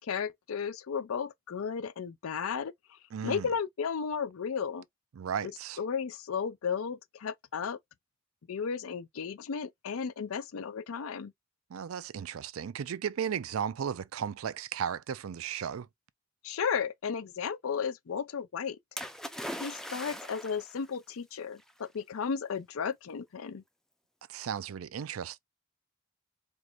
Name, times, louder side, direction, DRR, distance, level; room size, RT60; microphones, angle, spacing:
voice 1, 0.0-2.7 3.2-4.8 5.8-7.8 8.5-11.3 16.4-18.8 19.6-23.6, left 6 dB, 85° left, 0.5 m, -34 dB
voice 2, 3.1-3.5 5.1-5.8 11.7-15.9 24.3-25.4, right 8 dB, 85° right, 0.4 m, -35 dB
Splash splatter, 19.0-20.8 21.7-21.8, equal, ahead, 0.5 m, -40 dB
4.5 x 2.5 x 2.4 m
head